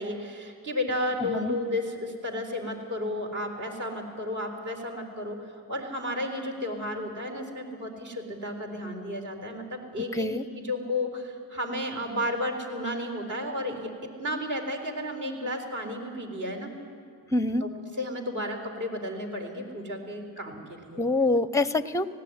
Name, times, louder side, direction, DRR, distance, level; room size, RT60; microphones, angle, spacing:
voice 1, 0.0-5.4 5.7-10.3 10.5-13.9 14.2-16.7 17.6-17.7 18.0-21.0, left 1 dB, 45° right, 3 dB, 4.1 m, -33 dB
voice 2, 1.2-1.5 10.1-10.4 17.3-17.7 21.0-22.1, left 2 dB, 10° left, 15 dB, 0.7 m, -25 dB
18.5 x 16.0 x 9.4 m, 2.2 s
cardioid pair, 75°, 40 cm